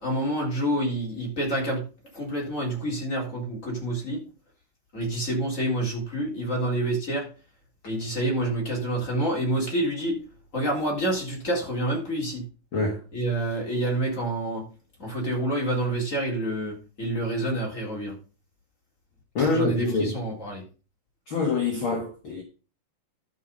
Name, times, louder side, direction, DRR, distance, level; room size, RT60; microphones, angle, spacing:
voice 1, 0.0-1.8 2.1-4.2 4.9-7.3 7.8-10.2 10.5-12.4 13.1-14.6 15.0-18.1 19.4-20.6, right 1 dB, 25° left, 3.9 m, -28 dB
voice 2, 19.4-20.1 21.3-22.4, left 3 dB, 45° left, 2.3 m, -25 dB
12.0 x 5.9 x 5.5 m
omnidirectional pair, 3.7 m